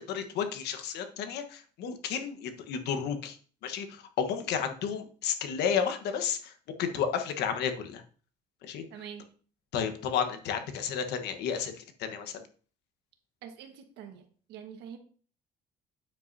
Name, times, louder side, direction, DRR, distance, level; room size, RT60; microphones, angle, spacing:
voice 1, 0.0-3.4 3.6-8.0 8.6-9.0 9.7-12.5, left 7 dB, 80° left, 8 dB, 1.3 m, -32 dB
voice 2, 8.9-9.3 13.4-15.0, right 8 dB, 90° right, 5 dB, 1.5 m, -45 dB
9.1 x 7.8 x 2.7 m, 0.41 s
cardioid pair, 110°, 17 cm